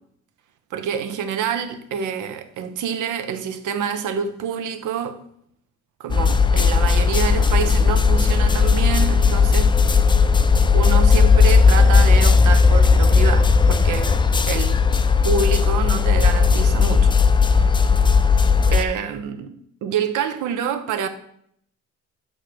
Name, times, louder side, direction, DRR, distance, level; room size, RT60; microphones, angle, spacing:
voice 1, 0.7-5.2 6.0-9.8 10.7-14.2 14.5-14.8 15.2-17.1 17.5-17.9 18.7-19.5 19.8-21.1, right 7 dB, 85° right, 0.8 m, -27 dB
sound 1, 6.1-18.8, left 5 dB, 15° left, 0.4 m, -16 dB
6.6 x 3.2 x 6.0 m
cardioid pair, 90°, 30 cm